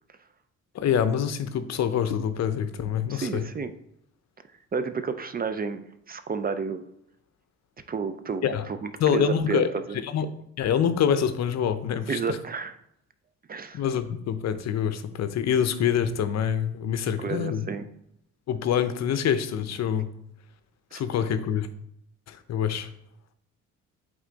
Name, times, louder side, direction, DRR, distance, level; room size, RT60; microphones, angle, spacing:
voice 1, 0.7-3.4 8.4-8.7 9.0-9.7 10.0-10.3 10.6-12.4 13.7-17.7 18.5-20.1 20.9-21.7 22.3-22.9, left 8 dB, 60° left, 11 dB, 0.6 m, -26 dB
voice 2, 3.1-3.7 4.7-6.8 7.9-10.0 12.1-12.8 13.5-13.8 17.2-17.8 20.9-21.0, right 5 dB, 30° right, 10 dB, 0.5 m, -31 dB
8.0 x 3.7 x 3.9 m, 0.77 s
cardioid pair, 90°, 30 cm